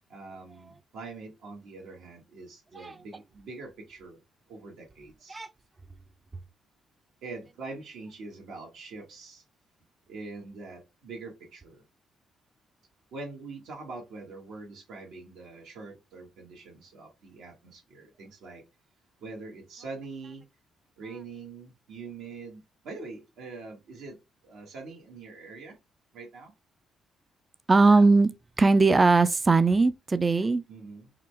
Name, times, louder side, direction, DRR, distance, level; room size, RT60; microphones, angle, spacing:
voice 1, 0.1-4.2 4.5-5.4 7.2-9.4 10.1-11.8 13.1-18.6 19.2-20.4 21.0-24.2 24.4-25.8 26.1-26.5 30.7-31.1, right 3 dB, 85° right, 1.3 m, -43 dB
voice 2, 27.7-28.3 28.6-30.6, right 3 dB, 25° right, 0.3 m, -20 dB
3.8 x 2.2 x 3.1 m
cardioid pair, 90°, 0 cm